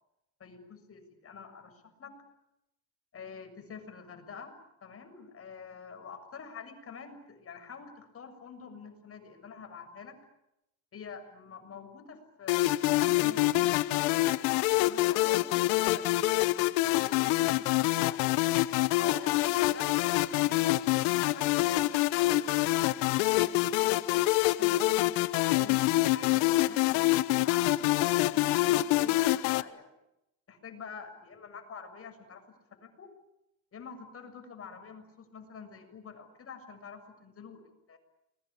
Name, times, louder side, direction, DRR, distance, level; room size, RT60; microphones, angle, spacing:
voice 1, 0.4-2.2 3.1-4.5 4.8-10.2 10.9-14.1 14.8-18.2 19.0-20.8 21.1-24.1 24.6-25.2 25.5-30.0 30.5-32.4 32.7-33.1 33.7-38.0, left 6 dB, 40° left, 7 dB, 7.1 m, -47 dB
sound 1, 12.5-29.6, left 18 dB, 85° left, 1.1 m, -26 dB
30.0 x 22.0 x 8.7 m, 0.87 s
supercardioid pair, 85°, 34 cm